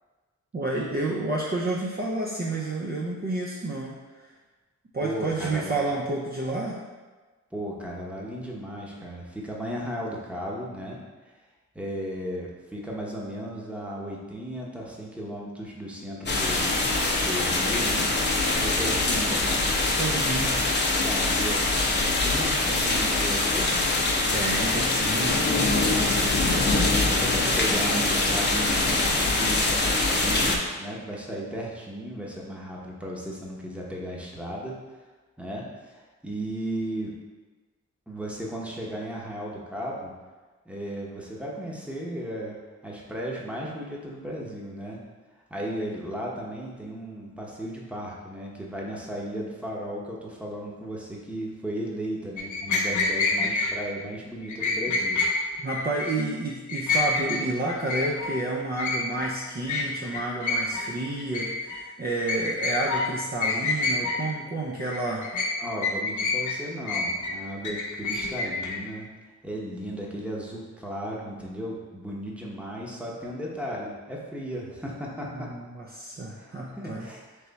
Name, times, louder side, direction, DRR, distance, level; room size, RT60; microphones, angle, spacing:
voice 1, 0.5-4.0 4.9-6.8 19.9-20.7 24.3-25.4 55.6-65.3 75.3-77.1, right 2 dB, 30° right, -4 dB, 0.5 m, -30 dB
voice 2, 5.0-5.8 7.5-11.3 11.7-16.8 17.2-18.1 18.6-19.7 21.0-21.7 22.2-23.9 25.9-26.6 27.1-34.8 35.4-37.2 38.1-40.1 40.6-42.6 42.8-45.0 45.5-55.2 65.6-69.1 69.4-75.5 76.4-77.3, equal, 5° right, -3 dB, 0.9 m, -35 dB
sound 1, 16.3-30.6, left 2 dB, 35° left, 0.7 m, -24 dB
sound 2, 52.4-53.7 54.5-55.3 55.7-56.2 56.5-57.4 57.7-58.3 58.8-59.3 59.7-59.9 60.1-60.9 61.2-61.8 62.3-63.1 63.4-64.2 64.8-65.5 65.8-66.6 66.9-68.8, left 3 dB, 85° left, 0.6 m, -27 dB
3.4 x 3.1 x 4.0 m, 1.3 s
cardioid pair, 70°, 29 cm